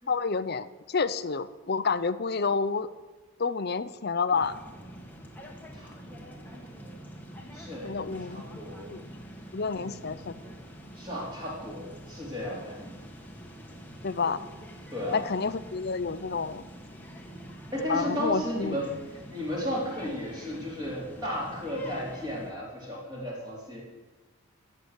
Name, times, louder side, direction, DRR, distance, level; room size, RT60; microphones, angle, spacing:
voice 1, 0.1-2.9 3.4-4.5 7.8-9.1 9.5-10.3 14.0-14.4 15.1-16.6 17.9-18.8, left 4 dB, 45° left, 13 dB, 0.6 m, -29 dB
sound 1, 4.3-22.5, equal, 10° left, 1.4 m, -46 dB
voice 2, 5.7-6.9 7.5-8.9 9.7-10.6 10.9-12.8 14.9-15.2 17.7-19.0 19.3-23.8, equal, 20° right, -4 dB, 3.7 m, -35 dB
16.5 x 6.8 x 8.2 m, 1.3 s
head